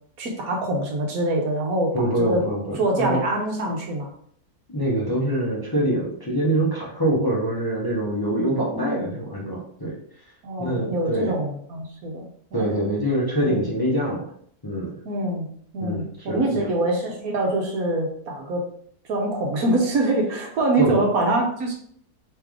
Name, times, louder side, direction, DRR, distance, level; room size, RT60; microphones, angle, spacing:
voice 1, 0.2-2.4 2.8-4.1 8.6-9.1 10.4-12.8 13.4-13.7 15.0-15.5 15.7-18.7 19.1-21.7, right 1 dB, 65° right, 1 dB, 1.2 m, -25 dB
voice 2, 1.9-3.2 4.7-10.0 10.6-11.4 12.5-14.3 14.6-15.0 15.8-16.7 20.8-21.0, right 1 dB, 20° left, -5 dB, 0.7 m, -24 dB
3.3 x 3.2 x 3.5 m, 0.63 s
omnidirectional pair, 1.7 m